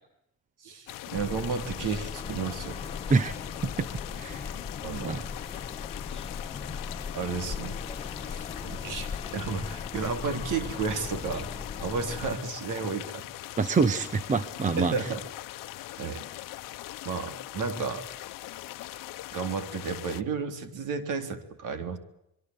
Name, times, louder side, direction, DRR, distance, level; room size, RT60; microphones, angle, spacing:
voice 1, 0.6-2.8 4.8-5.3 7.1-7.8 8.3-11.5 11.8-13.2 14.8-15.2 16.0-16.2 17.0-18.1 19.3-22.0, right 5 dB, 55° right, 9 dB, 3.6 m, -32 dB
sound 1, 0.9-20.2, left 16 dB, 60° left, 1.1 m, -41 dB
sound 2, 1.1-12.3, left 5 dB, 15° left, 1.1 m, -38 dB
voice 2, 4.2-4.5 5.0-5.2 13.6-14.9, right 4 dB, 20° right, 14 dB, 1.0 m, -25 dB
25.5 x 23.0 x 8.0 m, 0.81 s
cardioid pair, 175°, 36 cm